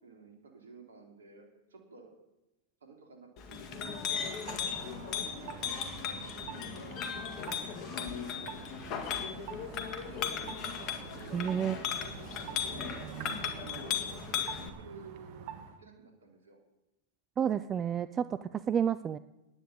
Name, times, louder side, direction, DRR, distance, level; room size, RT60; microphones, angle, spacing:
voice 1, 0.0-2.1 2.8-4.3 5.4-7.0 7.5-9.7 11.1-11.5 13.4-16.6, right 4 dB, 80° right, 3 dB, 3.2 m, -53 dB
Chink clink, 3.4-14.7, left 8 dB, 40° left, 1.9 m, -37 dB
sound 1, 4.4-15.8, right 8 dB, 50° right, 1.7 m, -46 dB
voice 2, 11.3-11.8 17.4-19.2, right 8 dB, 25° right, 14 dB, 0.5 m, -30 dB
10.0 x 9.8 x 8.4 m, 0.96 s
hypercardioid pair, 105°, 0 cm